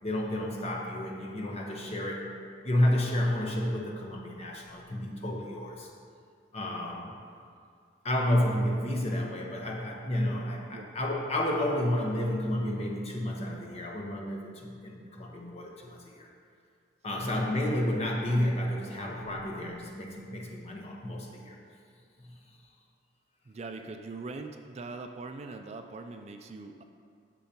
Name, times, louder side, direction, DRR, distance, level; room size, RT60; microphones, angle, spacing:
voice 1, 0.0-2.3 2.6-5.9 6.5-7.1 8.0-16.3 17.0-21.5 22.2-22.3, left 1 dB, 35° left, -1 dB, 1.0 m, -31 dB
voice 2, 23.5-26.8, right 3 dB, 35° right, 5 dB, 0.3 m, -41 dB
10.0 x 6.7 x 2.9 m, 2.4 s
head